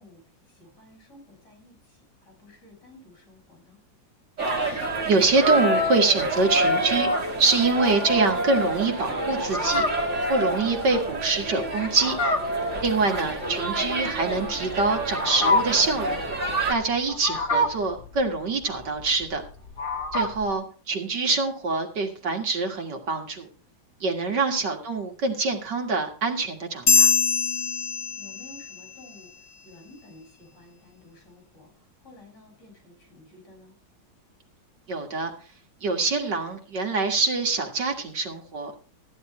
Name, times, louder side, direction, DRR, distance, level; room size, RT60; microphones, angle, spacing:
voice 1, 0.0-3.8 20.5-20.6 28.2-33.7, left 2 dB, 65° left, 1 dB, 6.8 m, -52 dB
sound 1, 4.4-16.7, right 1 dB, 40° right, 2.5 m, -28 dB
voice 2, 4.5-7.1 7.4-9.9 10.3-12.2 12.8-16.2 16.7-19.4 20.1-23.5 24.0-27.1 34.9-35.3 35.8-38.7, right 3 dB, 65° right, 3 dB, 2.5 m, -25 dB
Fowl, 9.4-20.5, left 1 dB, 30° left, 1.5 m, -28 dB
sound 2, 26.9-28.7, left 5 dB, 50° left, 0.7 m, -22 dB
14.5 x 11.0 x 3.2 m, 0.37 s
omnidirectional pair, 2.0 m